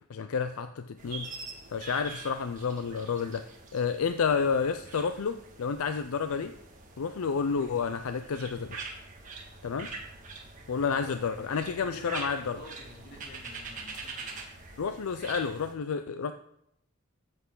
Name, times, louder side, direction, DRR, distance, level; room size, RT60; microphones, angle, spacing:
voice 1, 0.1-1.3 1.7-6.5 7.0-8.8 9.6-9.9 10.7-12.6 14.8-16.3, left 5 dB, 80° left, 10 dB, 0.5 m, -30 dB
sound 1, 1.0-15.7, right 3 dB, 35° right, 1.9 m, -44 dB
voice 2, 10.8-14.4, left 1 dB, 50° left, -2 dB, 3.2 m, -48 dB
14.0 x 7.9 x 3.9 m, 0.77 s
head